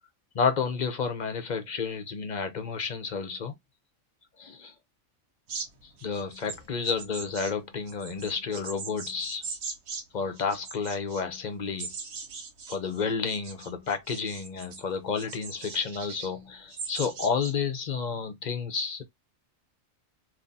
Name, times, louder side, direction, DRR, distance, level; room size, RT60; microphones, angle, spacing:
voice 1, 0.3-3.6 4.4-4.7 6.0-9.4 10.1-11.9 12.7-19.0, left 5 dB, 45° left, 0.6 m, -31 dB
sound 1, 5.5-10.0 10.4-11.2 11.8-14.8 15.2-16.3 16.7-17.5, right 5 dB, 90° right, 1.3 m, -40 dB
3.7 x 2.9 x 2.6 m
omnidirectional pair, 1.4 m